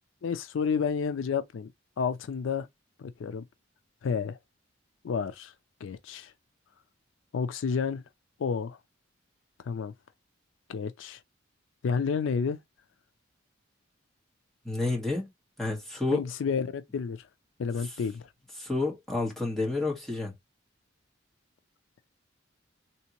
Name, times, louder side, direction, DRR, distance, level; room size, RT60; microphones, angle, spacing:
voice 1, 0.2-1.7 2.0-2.7 3.0-3.4 4.0-4.4 5.0-5.5 5.8-6.3 7.3-8.0 8.4-8.8 9.6-9.9 10.7-11.2 11.8-12.6 16.1-17.3 17.6-18.3, left 6 dB, 70° left, 0.4 m, -30 dB
voice 2, 14.6-15.3 15.6-16.2 18.6-20.3, left 3 dB, ahead, 1.6 m, -29 dB
3.4 x 2.8 x 2.9 m
head